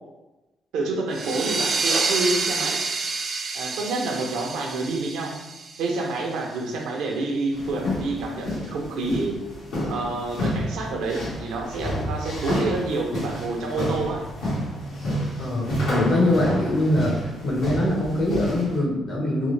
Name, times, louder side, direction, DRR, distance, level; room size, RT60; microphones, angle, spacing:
voice 1, 0.7-2.8 3.5-5.4 5.8-9.4 9.9-14.3, right 3 dB, 90° right, 1 dB, 0.6 m, -28 dB
sound 1, 1.1-6.4, right 4 dB, 45° right, 0.3 m, -28 dB
sound 2, 7.5-18.8, equal, 90° left, 1.5 m, -30 dB
voice 2, 15.4-17.1 17.4-19.5, left 1 dB, 75° left, -4 dB, 1.2 m, -23 dB
3.6 x 2.1 x 3.2 m, 1.1 s
cardioid pair, 90°, 0 cm